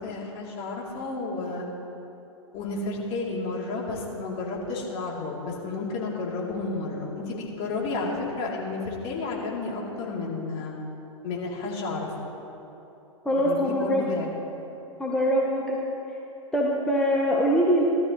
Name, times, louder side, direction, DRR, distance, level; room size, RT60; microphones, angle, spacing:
voice 1, 0.0-1.6 2.5-10.7 11.2-12.1 13.3-14.3, left 3 dB, 40° left, -3 dB, 3.1 m, -31 dB
voice 2, 13.2-14.1 15.0-15.8 16.1-16.2 16.5-17.8, equal, 5° left, -3 dB, 1.2 m, -23 dB
18.0 x 13.0 x 3.1 m, 3.0 s
figure-of-eight pair, 105°, 16 cm